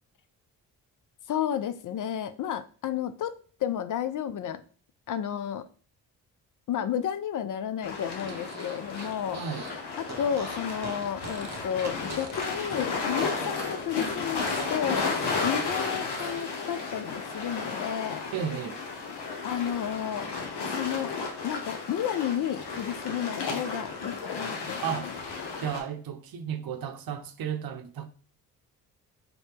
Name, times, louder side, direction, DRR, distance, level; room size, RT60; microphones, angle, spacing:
voice 1, 1.3-3.3 3.6-4.6 5.1-5.7 6.7-9.4 10.0-18.3 19.4-20.3 20.7-25.1, left 9 dB, 50° left, 0.5 m, -32 dB
sound 1, 7.8-25.8, left 4 dB, 70° left, 1.1 m, -33 dB
Fart, 8.2-9.8 10.0-13.3 13.6-16.4, right 4 dB, 40° right, 1.0 m, -43 dB
voice 2, 18.3-18.8 24.8-25.1 25.6-28.1, right 8 dB, 55° right, 0.7 m, -33 dB
4.2 x 2.8 x 3.4 m
hypercardioid pair, 45°, 42 cm